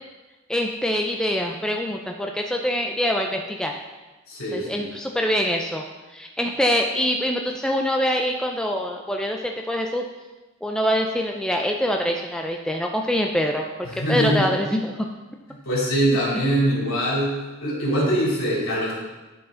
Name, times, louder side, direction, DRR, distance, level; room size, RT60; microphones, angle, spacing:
voice 1, 0.5-3.7 4.5-5.8 6.1-10.1 10.6-13.7 14.1-15.0, equal, 5° left, 2 dB, 0.3 m, -24 dB
voice 2, 4.3-4.9 13.8-14.5 15.6-18.9, right 1 dB, 70° left, -5 dB, 2.9 m, -23 dB
10.5 x 4.7 x 3.8 m, 1.2 s
head